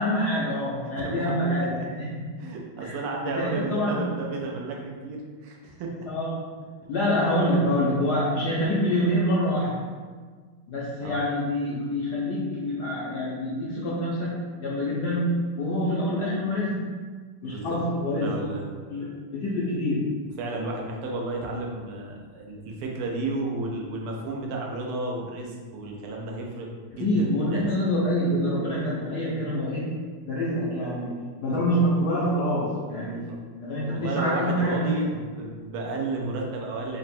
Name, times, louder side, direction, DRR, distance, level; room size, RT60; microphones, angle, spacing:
voice 1, 0.0-2.2 2.8-4.1 6.1-6.6 6.9-9.8 10.7-16.9 17.4-18.5 18.9-20.1 27.0-35.1, equal, 75° left, -6 dB, 0.9 m, -26 dB
voice 2, 1.0-1.7 2.4-6.1 11.0-11.2 17.4-17.8 18.1-18.6 20.4-26.7 27.0-27.7 31.2-31.8 33.1-33.4 33.9-37.0, right 2 dB, 85° right, 0 dB, 1.6 m, -32 dB
4.1 x 2.1 x 4.1 m, 1.5 s
omnidirectional pair, 2.4 m